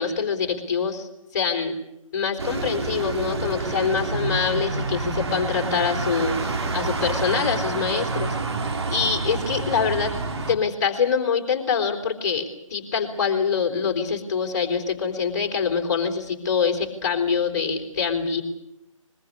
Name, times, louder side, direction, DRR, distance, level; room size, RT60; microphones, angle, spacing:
voice 1, 0.0-1.8 2.1-8.4 8.9-10.1 10.5-18.4, left 6 dB, 35° left, 5 dB, 4.0 m, -25 dB
sound 1, 2.4-10.5, right 3 dB, 50° right, 2.7 m, -28 dB
22.5 x 22.0 x 8.6 m, 0.84 s
figure-of-eight pair, 150°, 18 cm